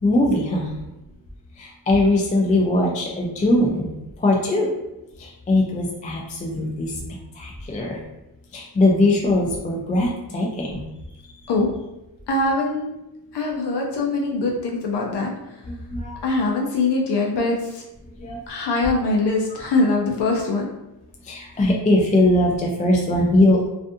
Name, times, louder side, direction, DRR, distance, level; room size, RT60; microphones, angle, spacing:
voice 1, 0.0-0.7 1.6-3.9 4.2-4.7 5.2-7.0 7.3-8.0 8.5-10.8 15.7-16.2 18.2-18.4 19.6-19.7 21.2-23.7, left 1 dB, 20° left, -1 dB, 0.3 m, -20 dB
voice 2, 12.3-12.9 13.3-15.3 16.2-17.8 18.5-20.7, left 3 dB, 60° left, -1 dB, 0.6 m, -22 dB
2.5 x 2.3 x 2.6 m, 0.95 s
cardioid pair, 80°, 46 cm